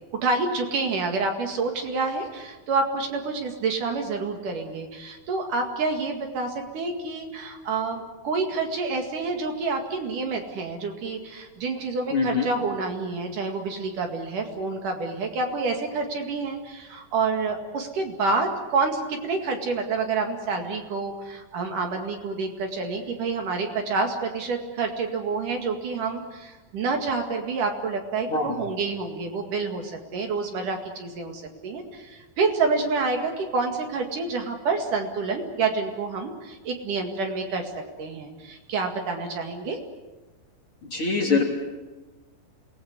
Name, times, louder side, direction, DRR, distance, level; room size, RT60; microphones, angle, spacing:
voice 1, 0.2-37.7 38.0-39.8, right 4 dB, 60° right, 3 dB, 3.5 m, -28 dB
voice 2, 12.1-12.5 28.3-28.5 40.9-41.4, left 4 dB, 35° left, 0 dB, 3.7 m, -23 dB
27.5 x 19.5 x 8.1 m, 1.2 s
omnidirectional pair, 4.4 m